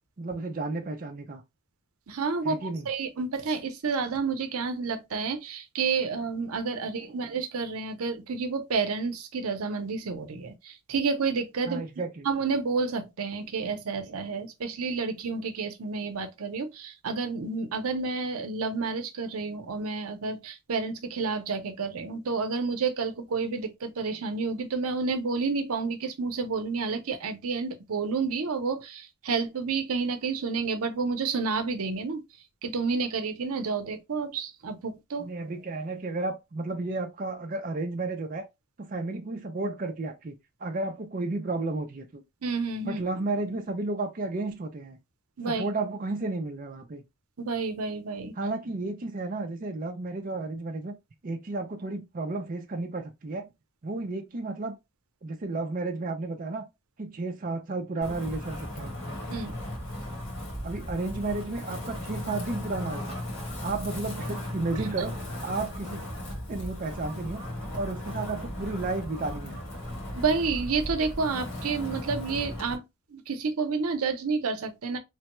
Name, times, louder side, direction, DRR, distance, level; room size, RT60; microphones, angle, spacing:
voice 1, 0.2-1.4 2.4-2.9 11.7-12.3 35.2-38.5 38.8-40.3 40.6-42.2 42.8-45.0 45.4-47.0 48.4-51.0 51.2-53.5 53.8-54.8 55.2-56.6 57.0-58.9 60.6-63.2 63.6-66.0 66.5-67.4 67.7-69.6, right 3 dB, 40° right, 0.4 m, -32 dB
voice 2, 2.1-11.8 12.2-32.2 32.6-35.5 42.4-43.0 45.4-45.6 47.4-48.3 59.3-59.6 64.8-64.9 70.1-72.8 73.1-75.0, right 4 dB, 90° right, 0.7 m, -30 dB
Wind, 58.0-72.7, left 1 dB, 65° left, 1.5 m, -36 dB
3.3 x 2.2 x 3.0 m
head